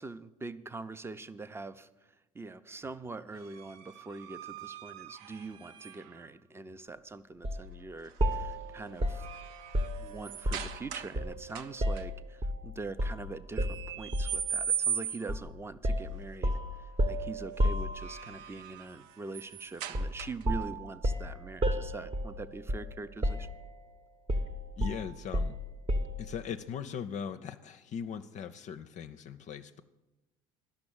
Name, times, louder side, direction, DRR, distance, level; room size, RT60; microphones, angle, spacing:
voice 1, 0.0-1.9 2.3-9.3 10.0-16.5 17.1-23.5, right 3 dB, 15° right, 13 dB, 0.6 m, -43 dB
sound 1, 3.4-6.3 8.0-8.4 8.8-11.2 11.5-12.0 13.5-15.4 17.7-20.6, right 8 dB, 65° right, 0.6 m, -39 dB
sound 2, 7.4-7.7 8.2-10.8 11.1-12.6 13.0-13.2 13.6-14.5 15.3-15.5 15.8-18.4 19.9-20.2 20.4-23.0 23.2-23.8 24.3-26.3, equal, 30° right, 1.0 m, -32 dB
voice 2, 24.8-25.6 26.2-29.8, left 7 dB, 40° left, 8 dB, 0.5 m, -39 dB
11.5 x 6.1 x 8.6 m, 1.0 s
hypercardioid pair, 65°, 18 cm